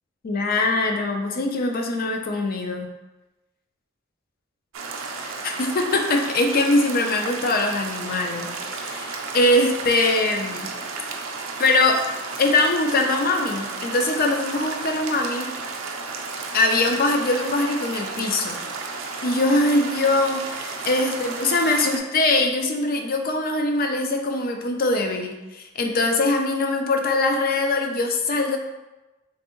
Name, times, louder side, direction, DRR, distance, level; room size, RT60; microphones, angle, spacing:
voice 1, 0.2-2.9 5.2-8.5 8.8-10.7 11.3-12.0 12.4-15.5 16.5-18.6 19.2-28.6, left 2 dB, 45° left, 3 dB, 0.4 m, -22 dB
sound 1, 4.7-22.0, right 4 dB, 70° right, 0.5 m, -33 dB
3.4 x 3.3 x 3.0 m, 1.1 s
head